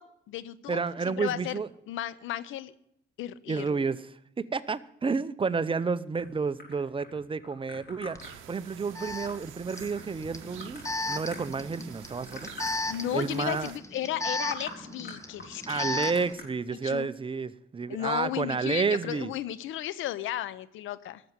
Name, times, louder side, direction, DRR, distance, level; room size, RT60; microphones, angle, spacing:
voice 1, 0.0-1.6 1.9-2.7 3.2-3.9 12.9-15.9 16.7-17.1 17.9-21.2, left 12 dB, 85° left, 0.7 m, -34 dB
voice 2, 0.7-1.7 3.5-12.5 13.1-13.7 15.7-19.3, right 5 dB, 25° right, 0.7 m, -30 dB
sound 1, 6.1-11.7 12.0-12.8 13.1-13.7 14.1-14.2 14.5-14.7 15.0-16.4, left 3 dB, 55° left, 5.3 m, -45 dB
Alarm, 8.2-8.3 9.0-16.3, left 2 dB, 15° left, 1.2 m, -35 dB
sound 2, 8.2-13.8, right 13 dB, 85° right, 0.7 m, -48 dB
13.0 x 7.1 x 9.5 m
cardioid pair, 90°, 20 cm